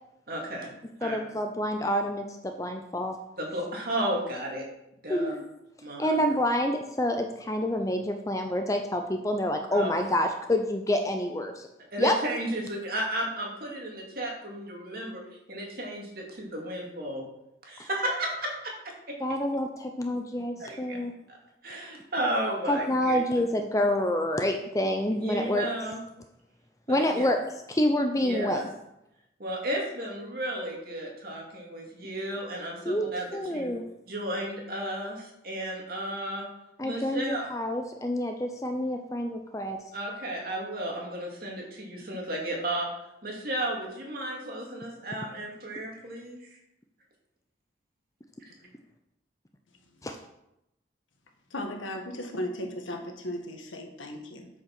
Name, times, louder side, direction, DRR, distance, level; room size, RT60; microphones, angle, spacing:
voice 1, 0.3-0.7 1.0-1.2 3.4-4.6 5.0-5.3 5.8-6.2 9.7-9.9 11.9-15.2 15.5-17.3 17.6-18.7 20.6-21.0 21.3-21.4 21.6-23.2 25.1-26.0 26.9-27.4 28.2-28.6 29.4-33.7 34.1-36.5 36.8-37.4 39.9-42.9 43.2-46.4, right 1 dB, 50° right, -1 dB, 2.3 m, -33 dB
voice 2, 1.0-3.2 5.1-5.4 6.0-11.7 12.0-12.1 19.2-21.1 22.7-25.7 26.9-27.4 27.7-28.7 32.8-33.8 36.8-39.8 50.0-50.2, left 1 dB, 15° left, 5 dB, 0.5 m, -27 dB
voice 3, 51.5-54.5, left 1 dB, 90° left, 4 dB, 1.5 m, -36 dB
8.5 x 5.4 x 6.0 m, 0.85 s
head